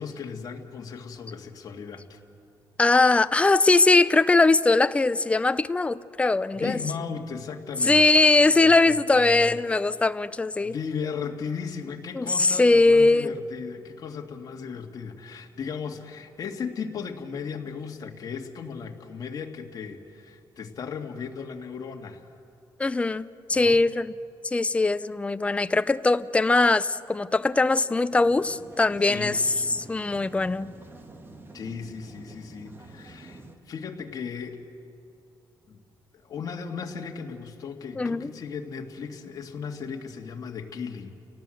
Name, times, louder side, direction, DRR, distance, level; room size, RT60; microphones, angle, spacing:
voice 1, 0.0-2.2 6.5-8.1 8.6-9.6 10.6-22.2 23.5-23.8 29.1-29.4 31.5-34.6 35.7-35.8 36.1-41.1, left 6 dB, 50° left, 2 dB, 2.0 m, -36 dB
voice 2, 2.8-6.8 7.9-10.7 12.1-13.3 22.8-24.1 24.4-29.4 29.7-30.7 38.0-38.3, left 3 dB, 15° left, 14 dB, 0.5 m, -21 dB
sound 1, 28.1-33.6, right 2 dB, 25° right, 1.8 m, -47 dB
29.5 x 18.0 x 7.8 m, 2.6 s
cardioid pair, 140°, 8 cm